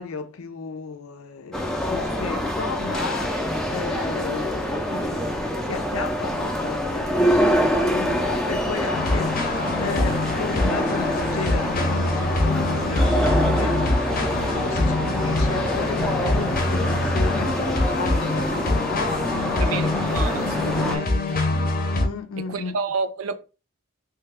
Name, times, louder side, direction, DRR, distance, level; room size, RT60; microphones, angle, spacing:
voice 1, 0.0-14.1 14.5-21.4 22.0-22.8, left 5 dB, 85° left, 0.5 m, -33 dB
sound 1, 1.5-21.0, equal, 5° left, 0.4 m, -26 dB
sound 2, 8.9-22.1, left 2 dB, 45° left, 0.6 m, -24 dB
voice 2, 19.6-21.4 22.4-23.3, right 4 dB, 85° right, 0.5 m, -30 dB
3.2 x 2.3 x 3.4 m
head